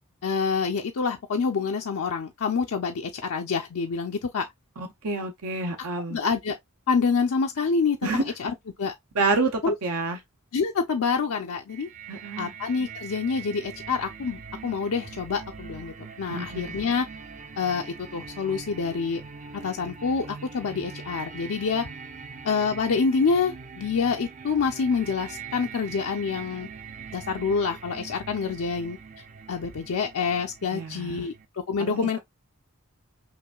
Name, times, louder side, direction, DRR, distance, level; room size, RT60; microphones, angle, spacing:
voice 1, 0.2-4.5 6.1-6.6 6.9-8.9 9.6-9.7 10.5-11.9 12.4-17.1 17.6-19.2 19.5-21.9 22.4-26.7 27.1-29.0 29.5-32.2, left 5 dB, 70° left, 0.5 m, -27 dB
voice 2, 4.8-6.2 8.0-8.2 9.1-10.2 12.1-12.5 16.3-16.7 30.7-31.3 31.8-32.2, right 3 dB, 85° right, 0.7 m, -28 dB
sound 1, 11.7-31.5, right 5 dB, 35° right, 0.5 m, -42 dB
5.8 x 2.5 x 2.3 m
head